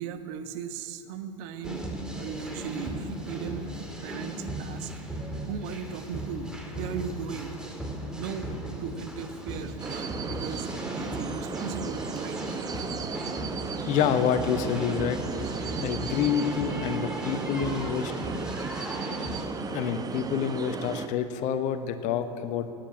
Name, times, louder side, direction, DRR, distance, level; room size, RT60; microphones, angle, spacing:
voice 1, 0.0-1.9 2.1-4.9 5.4-7.5 8.1-8.5 8.8-12.5, right 7 dB, 55° right, 9 dB, 1.2 m, -37 dB
sound 1, 1.6-19.5, equal, 5° right, 2.5 m, -37 dB
sound 2, 9.8-21.1, right 5 dB, 20° right, 0.9 m, -35 dB
voice 2, 13.9-15.2 15.5-18.1 19.7-22.7, left 8 dB, 45° left, 10 dB, 1.1 m, -28 dB
16.0 x 9.3 x 8.7 m, 2.6 s
figure-of-eight pair, 80°, 17 cm